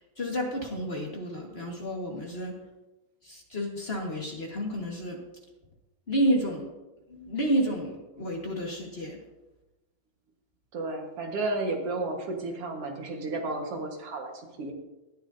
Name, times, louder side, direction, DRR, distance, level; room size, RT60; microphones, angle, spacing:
voice 1, 0.2-2.5 3.2-5.2 6.1-6.7 7.1-9.2, equal, 50° left, -1 dB, 0.7 m, -30 dB
voice 2, 10.7-14.7, right 2 dB, 50° right, 2 dB, 2.2 m, -32 dB
18.5 x 11.0 x 2.8 m, 1.0 s
omnidirectional pair, 3.9 m